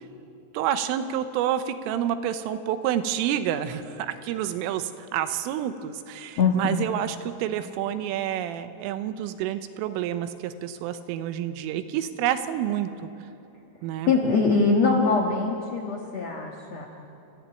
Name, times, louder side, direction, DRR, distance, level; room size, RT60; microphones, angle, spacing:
voice 1, 0.5-12.9 13.8-14.1, right 10 dB, 90° right, 10 dB, 3.5 m, -28 dB
voice 2, 6.4-6.8 14.1-16.9, left 4 dB, 80° left, 1 dB, 1.5 m, -23 dB
30.0 x 14.5 x 9.1 m, 2.9 s
omnidirectional pair, 5.7 m